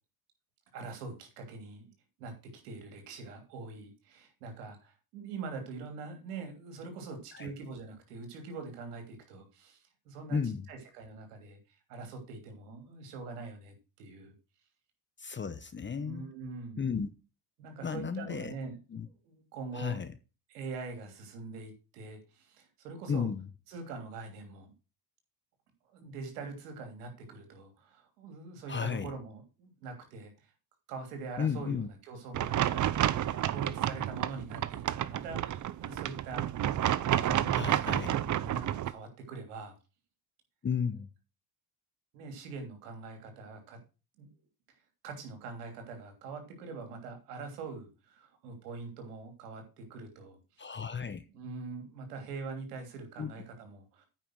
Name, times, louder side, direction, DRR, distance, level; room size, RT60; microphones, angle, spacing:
voice 1, 0.7-1.9 2.2-11.6 11.9-14.3 16.0-16.8 17.6-18.8 19.2-20.0 20.5-23.3 23.7-24.7 25.9-30.3 30.9-36.5 37.1-39.7 42.1-43.8 44.2-44.3 45.0-50.7 51.3-54.0, right 4 dB, 90° right, 3.1 m, -43 dB
voice 2, 10.3-10.7 15.2-16.3 16.8-17.1 17.8-18.5 18.9-19.1 19.7-20.1 23.1-23.5 28.7-29.1 31.4-31.9 37.5-38.2 40.6-41.1 50.6-51.2 53.2-53.3, left 6 dB, 25° left, 1.0 m, -34 dB
sound 1, 32.3-38.9, right 11 dB, 40° right, 0.7 m, -30 dB
9.1 x 5.5 x 6.3 m
supercardioid pair, 80°, 45 cm